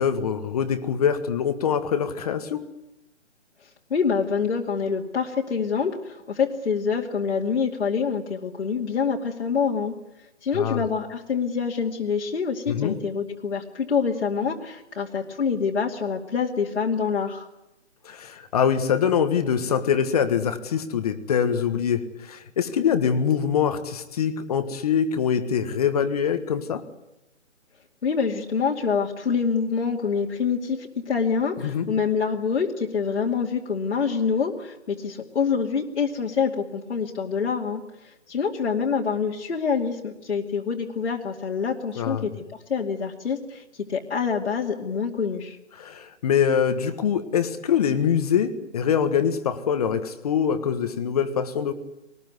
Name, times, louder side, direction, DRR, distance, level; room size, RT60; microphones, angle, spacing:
voice 1, 0.0-2.6 10.5-10.9 12.7-13.0 18.0-26.8 31.6-31.9 41.9-42.3 45.8-51.7, left 7 dB, 30° left, 10 dB, 1.5 m, -24 dB
voice 2, 3.9-9.9 10.4-17.5 28.0-42.3 42.7-43.6 43.9-45.6, left 6 dB, 65° left, -2 dB, 2.6 m, -26 dB
23.5 x 19.5 x 9.5 m, 0.92 s
hypercardioid pair, 155°, 37 cm